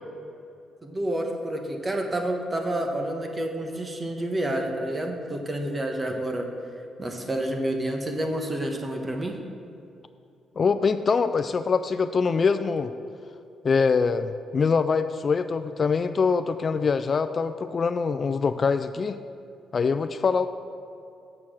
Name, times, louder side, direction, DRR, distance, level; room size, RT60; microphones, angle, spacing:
voice 1, 0.8-6.5 7.0-9.4, right 1 dB, 25° right, 3 dB, 1.2 m, -29 dB
voice 2, 10.6-12.9 13.6-19.2 19.7-20.5, left 5 dB, 40° left, 11 dB, 0.3 m, -24 dB
7.1 x 6.8 x 6.2 m, 2.6 s
cardioid pair, 90°, 0 cm